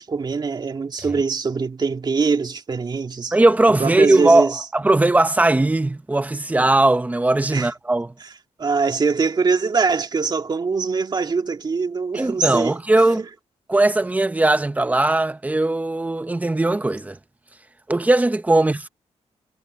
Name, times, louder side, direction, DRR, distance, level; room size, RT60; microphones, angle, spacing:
voice 1, 0.0-3.3 3.8-4.6 7.5-7.7 8.2-8.3 8.6-13.3, right 4 dB, 40° right, 2.5 m, -23 dB
voice 2, 3.3-8.1 12.1-13.2 13.7-17.2 17.9-18.9, right 2 dB, 15° right, 1.0 m, -19 dB
wide cardioid pair, 135°, 12 cm